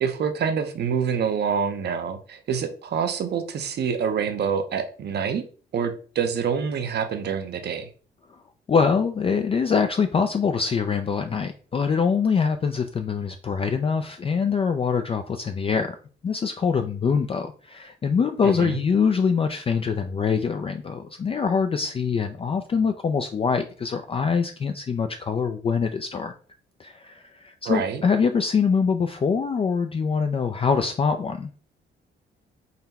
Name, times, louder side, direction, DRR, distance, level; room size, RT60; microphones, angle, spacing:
voice 1, 0.0-5.5 5.7-7.9 18.4-18.8 27.7-28.0, right 7 dB, 55° right, 8 dB, 0.7 m, -26 dB
voice 2, 8.7-15.9 16.2-26.3 26.8-31.5, left 5 dB, 30° left, 6 dB, 0.3 m, -24 dB
4.0 x 2.2 x 4.0 m, 0.40 s
cardioid pair, 90°, 20 cm